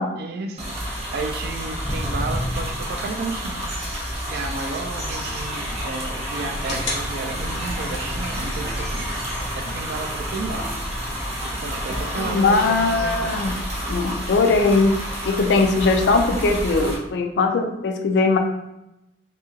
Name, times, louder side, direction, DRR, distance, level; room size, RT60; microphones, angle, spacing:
voice 1, 0.2-3.7 4.3-9.3 9.6-10.7 11.4-13.5, right 3 dB, 55° right, 5 dB, 0.3 m, -32 dB
sound 1, 0.6-16.9, equal, 35° right, 0.7 m, -29 dB
Walk footsteps, 1.2-7.8 8.2-8.5 9.1-9.2 9.8-9.9 10.3-10.4 10.6-10.7 11.3-11.5 12.1-13.7 14.3-14.4 15.1-15.2 15.6-15.9 16.6-16.7, equal, 15° left, 0.6 m, -34 dB
sound 2, 4.1-11.1, left 1 dB, 85° left, 0.8 m, -37 dB
voice 2, 11.9-13.5 13.9-14.9 15.2-18.4, left 3 dB, 65° left, 5 dB, 0.3 m, -20 dB
2.8 x 2.3 x 2.7 m, 0.89 s
head